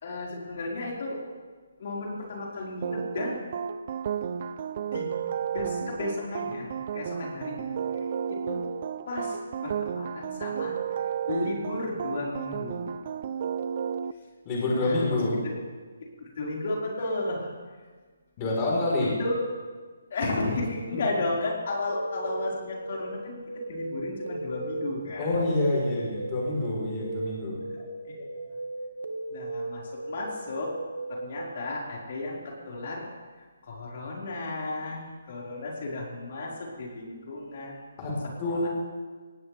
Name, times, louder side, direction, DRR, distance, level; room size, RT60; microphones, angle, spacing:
voice 1, 0.0-1.2 1.8-3.4 4.9-5.1 5.5-8.6 9.1-9.4 9.6-10.7 11.3-12.9 14.8-15.0 15.4-15.5 16.4-17.5 19.0-19.4 20.1-23.4 23.7-25.4 27.7-27.9 28.2-28.5 29.3-30.7 31.1-33.1 33.4-37.8 38.4-38.7, left 2 dB, 50° left, -4 dB, 4.7 m, -33 dB
sound 1, 2.8-14.1, right 7 dB, 40° right, 0.5 m, -32 dB
voice 2, 14.5-15.4 18.4-19.2 25.2-27.6 38.0-38.7, left 2 dB, 25° left, -4 dB, 4.2 m, -27 dB
sound 2, 21.9-31.4, right 2 dB, 85° right, 1.7 m, -37 dB
18.5 x 17.5 x 3.4 m, 1.4 s
hypercardioid pair, 160°, 0 cm